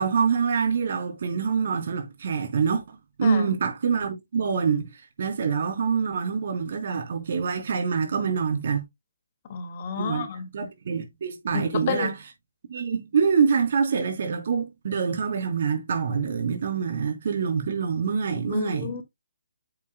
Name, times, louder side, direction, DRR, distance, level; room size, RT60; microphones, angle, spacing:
voice 1, 0.0-8.8 10.0-10.3 10.5-12.2 12.7-19.0, right 6 dB, 55° right, 3.6 m, -25 dB
voice 2, 9.5-10.5 11.5-12.1 18.5-19.0, left 7 dB, 40° left, 2.1 m, -30 dB
9.5 x 7.4 x 2.2 m
figure-of-eight pair, 140°, 0 cm